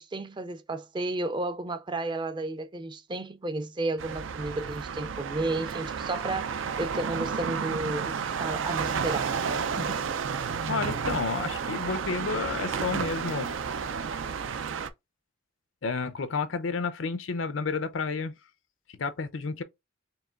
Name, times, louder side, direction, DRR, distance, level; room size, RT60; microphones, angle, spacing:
voice 1, 0.0-9.5 9.8-10.1, right 2 dB, 25° right, 0.4 m, -33 dB
sound 1, 4.0-14.9, right 6 dB, 90° right, 0.5 m, -31 dB
voice 2, 10.7-13.5 15.8-18.3 19.0-19.6, left 4 dB, 85° left, 0.6 m, -31 dB
4.6 x 3.1 x 2.4 m
head